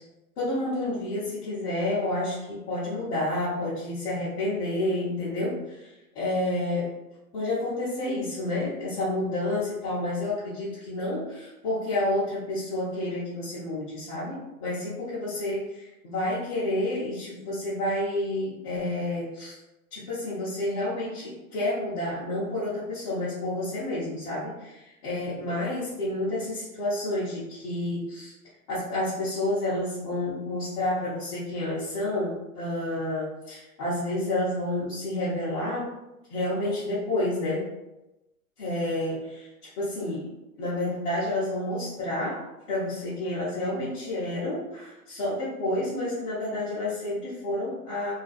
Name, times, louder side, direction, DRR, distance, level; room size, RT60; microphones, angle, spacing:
voice 1, 0.4-5.9 6.1-6.9 7.3-19.6 19.9-28.3 28.7-35.9 36.3-37.7 38.6-39.5 39.8-40.3 40.6-42.4 42.7-48.1, left 1 dB, 25° left, -11 dB, 0.6 m, -29 dB
2.5 x 2.1 x 2.4 m, 0.96 s
hypercardioid pair, 140°, 44 cm